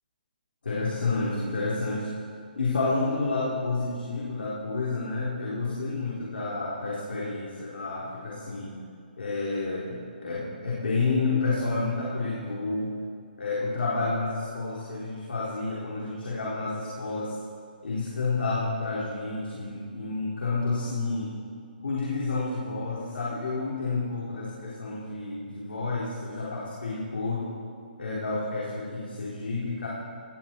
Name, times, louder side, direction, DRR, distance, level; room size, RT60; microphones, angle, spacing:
voice 1, 0.6-2.1 2.6-8.7 9.2-13.0 13.4-17.3 17.8-21.4 21.8-27.5 28.0-29.9, left 3 dB, 85° left, -6 dB, 3.8 m, -30 dB
18.0 x 16.0 x 4.5 m, 2.3 s
hypercardioid pair, 170°, 5 cm